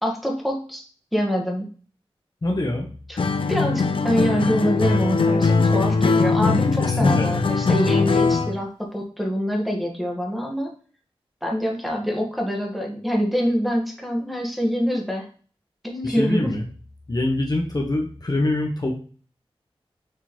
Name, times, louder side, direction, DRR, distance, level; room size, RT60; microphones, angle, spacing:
voice 1, 0.0-0.8 1.1-1.7 3.1-3.2 3.5-10.7 11.4-15.3 15.8-16.5, equal, ahead, -1 dB, 1.9 m, -25 dB
voice 2, 2.4-2.9 6.8-7.5 16.0-16.6 17.1-18.9, left 1 dB, 40° left, 1 dB, 1.3 m, -24 dB
Acoustic guitar, 3.2-8.6, left 4 dB, 60° left, 0.7 m, -20 dB
6.8 x 3.9 x 4.4 m, 0.41 s
wide cardioid pair, 60°, 10 cm